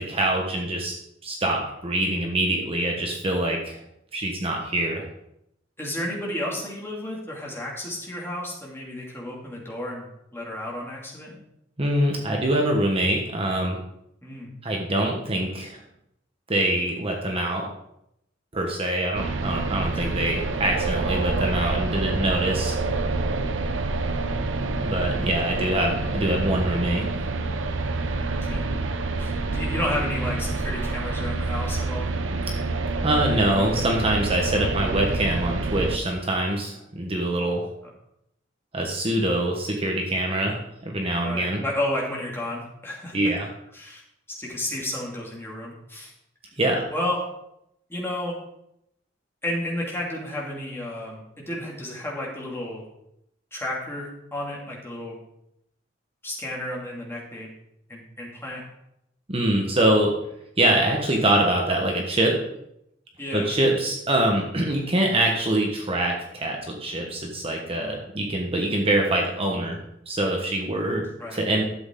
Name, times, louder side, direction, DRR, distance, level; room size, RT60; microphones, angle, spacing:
voice 1, 0.0-3.8 4.1-5.1 11.8-13.8 14.6-15.8 16.5-17.7 18.5-22.8 24.8-27.0 33.0-37.7 38.7-41.6 43.1-43.5 46.6-46.8 59.3-60.1 60.6-62.4 63.3-69.8 70.1-71.1 71.3-71.6, right 1 dB, 30° right, 0 dB, 1.3 m, -24 dB
voice 2, 5.8-11.4 14.2-14.5 19.8-20.2 25.2-25.3 28.3-28.7 29.2-32.1 34.5-34.7 41.2-43.3 43.7-44.0 44.3-46.1 46.9-47.2 47.9-48.3 49.4-52.8 53.5-55.2 56.2-57.5 57.9-58.6 63.2-63.5 71.2-71.4, left 1 dB, 15° left, -3 dB, 2.6 m, -32 dB
sound 1, 19.1-36.0, right 3 dB, 80° right, 0.7 m, -27 dB
12.0 x 7.9 x 3.9 m, 0.79 s
head